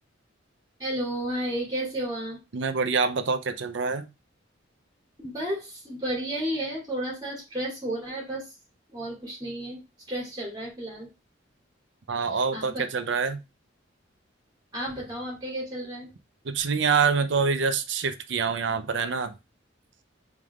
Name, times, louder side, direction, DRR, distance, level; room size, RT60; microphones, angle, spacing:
voice 1, 0.8-2.4 5.2-8.5 8.9-9.8 10.1-11.1 12.3-12.8 14.7-16.1, right 1 dB, 20° right, -3 dB, 2.5 m, -32 dB
voice 2, 2.5-4.1 12.1-13.4 16.5-19.3, right 5 dB, 65° right, 10 dB, 0.6 m, -26 dB
5.0 x 3.6 x 2.4 m, 0.25 s
head